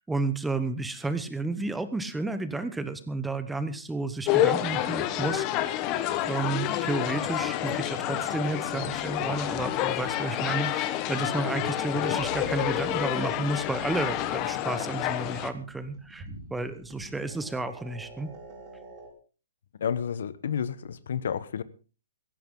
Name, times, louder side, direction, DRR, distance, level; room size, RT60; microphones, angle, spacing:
voice 1, 0.1-5.8 6.3-18.3, right 3 dB, 5° right, 1.1 m, -32 dB
sound 1, 4.3-15.5, left 13 dB, 25° left, 1.1 m, -29 dB
sound 2, 12.2-19.1, right 3 dB, 25° right, 5.2 m, -48 dB
voice 2, 19.8-21.6, left 8 dB, 70° left, 1.1 m, -30 dB
17.0 x 15.0 x 3.9 m
hypercardioid pair, 155°, 0 cm